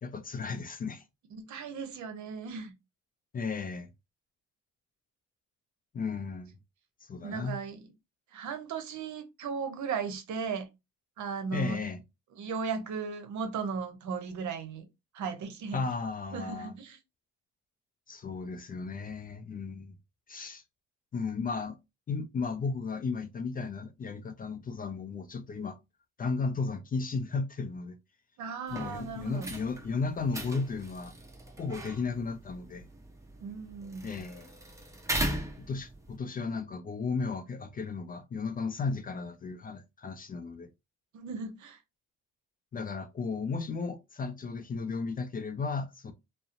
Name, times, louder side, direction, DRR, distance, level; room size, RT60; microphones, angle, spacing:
voice 1, 0.0-1.0 3.3-3.9 5.9-6.5 7.0-7.6 11.5-12.0 15.7-16.7 18.1-19.9 20.3-20.6 21.1-21.8 22.1-25.8 26.2-28.0 28.7-31.1 31.6-32.9 34.0-34.5 35.6-40.7 42.7-46.1, left 4 dB, 30° left, 0.4 m, -34 dB
voice 2, 1.3-2.7 7.2-7.8 8.3-10.7 11.2-11.8 12.3-14.9 15.1-15.8 16.3-17.0 28.4-29.5 33.4-34.2 41.1-41.8, right 5 dB, 65° right, 0.7 m, -36 dB
sound 1, 28.7-36.2, right 1 dB, 10° right, 0.6 m, -39 dB
2.6 x 2.0 x 2.5 m
cardioid pair, 95°, 31 cm